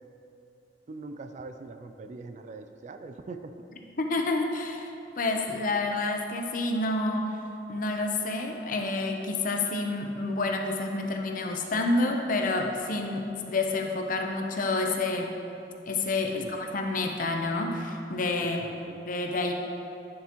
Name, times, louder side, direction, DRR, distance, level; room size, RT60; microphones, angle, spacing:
voice 1, 0.9-3.5 16.3-16.6 18.4-19.0, right 3 dB, 45° right, 8 dB, 0.3 m, -42 dB
voice 2, 4.0-7.4 7.7-15.3 15.9-18.6 19.1-19.5, left 2 dB, 50° left, 3 dB, 0.7 m, -29 dB
9.7 x 6.9 x 3.0 m, 2.7 s
head